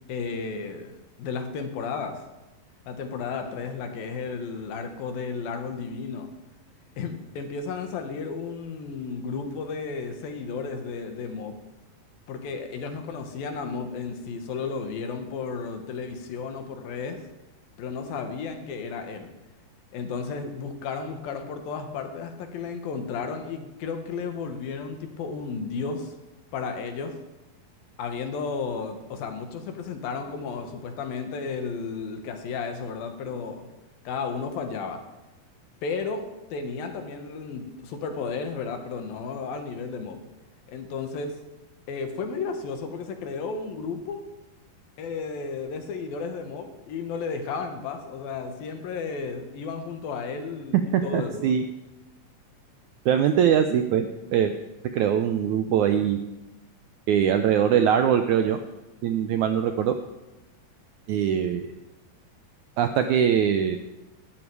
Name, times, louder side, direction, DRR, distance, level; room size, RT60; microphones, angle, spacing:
voice 1, 0.1-0.9 1.2-2.2 2.9-6.3 7.0-11.5 12.3-17.2 17.8-19.3 19.9-26.1 26.5-27.1 28.0-33.7 34.0-35.0 35.8-36.2 36.5-40.2 40.7-41.4 41.9-44.2 45.0-51.5, left 5 dB, 75° left, 6 dB, 3.3 m, -33 dB
voice 2, 50.7-51.6 53.1-54.5 54.9-56.2 57.1-58.6 59.0-60.0 61.1-61.7 62.8-63.8, right 9 dB, 80° right, 7 dB, 1.7 m, -22 dB
18.5 x 12.5 x 4.8 m, 1.0 s
omnidirectional pair, 4.2 m